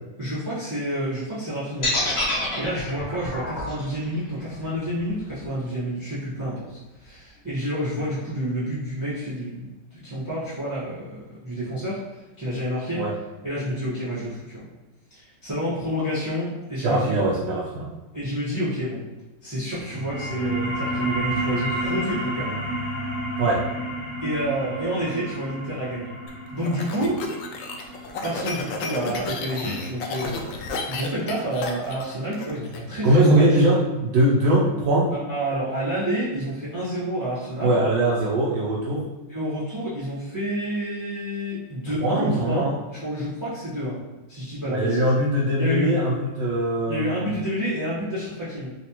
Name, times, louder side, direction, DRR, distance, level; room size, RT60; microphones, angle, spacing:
voice 1, 0.2-2.3 2.6-13.1 13.4-14.6 15.1-17.3 18.1-19.0 19.4-22.6 24.2-26.1 26.5-27.2 28.2-33.4 35.1-37.8 39.3-44.0 44.3-45.1 45.6-45.9 46.9-48.7, equal, 10° right, -11 dB, 0.9 m, -29 dB
sound 1, 1.8-5.9, left 2 dB, 60° left, 0.6 m, -28 dB
voice 2, 16.8-17.9 23.4-23.6 33.0-35.1 37.6-39.0 42.0-42.6 44.7-47.3, right 1 dB, 75° right, -7 dB, 1.4 m, -21 dB
sound 2, 19.8-30.9, right 1 dB, 55° right, 1.2 m, -31 dB
sound 3, 26.3-32.8, left 4 dB, 75° left, 1.2 m, -32 dB
4.2 x 2.3 x 2.9 m, 1.1 s
omnidirectional pair, 2.3 m